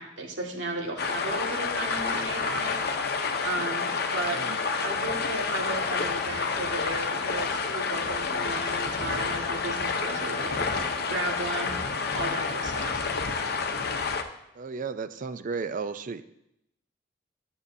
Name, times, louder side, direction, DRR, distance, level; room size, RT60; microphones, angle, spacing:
voice 1, 0.0-3.2 3.4-4.4 4.8-13.1, right 2 dB, 80° right, 0 dB, 1.7 m, -35 dB
sound 1, 1.0-14.2, left 4 dB, 60° left, 0.7 m, -29 dB
voice 2, 14.6-16.2, right 5 dB, 45° right, 12 dB, 0.4 m, -34 dB
12.0 x 6.9 x 2.7 m, 0.81 s
head